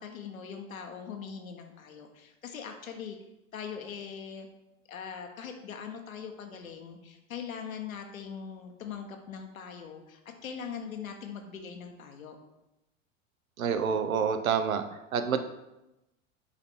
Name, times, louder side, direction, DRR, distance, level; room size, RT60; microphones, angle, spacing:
voice 1, 0.0-3.2 3.5-4.5 4.9-12.4, left 7 dB, 90° left, 4 dB, 1.1 m, -41 dB
voice 2, 13.6-14.8 15.1-15.4, right 7 dB, 85° right, 9 dB, 0.8 m, -27 dB
6.9 x 4.3 x 4.4 m, 0.94 s
hypercardioid pair, 90°, 40 cm